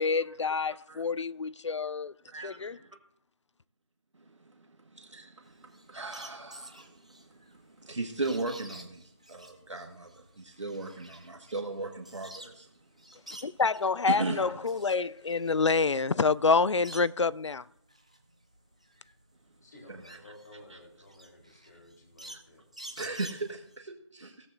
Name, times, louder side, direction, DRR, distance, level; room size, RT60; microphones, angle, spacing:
voice 1, 0.0-2.1 2.4-2.8 13.4-17.6, left 4 dB, 65° left, 0.4 m, -27 dB
voice 2, 2.3-2.9 4.2-12.7 14.1-14.5 20.1-20.2 20.7-20.8 23.0-24.5, right 3 dB, 70° right, 1.5 m, -37 dB
sound 1, 5.4-12.7 13.0-14.0 14.4-17.4 17.8-23.8, right 1 dB, 15° right, 0.4 m, -50 dB
voice 3, 19.6-22.7, left 1 dB, 35° left, 3.7 m, -53 dB
16.5 x 14.0 x 2.6 m
figure-of-eight pair, 170°, 16 cm